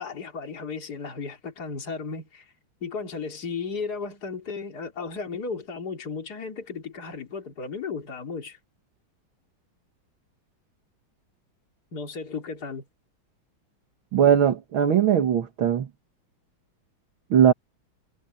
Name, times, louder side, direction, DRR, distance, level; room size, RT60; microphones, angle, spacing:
voice 1, 0.0-2.5 2.8-8.6 11.9-12.8, left 5 dB, 50° left, 3.6 m, -34 dB
voice 2, 14.1-15.9 17.3-17.5, right 9 dB, 75° right, 2.3 m, -19 dB
omnidirectional pair, 2.3 m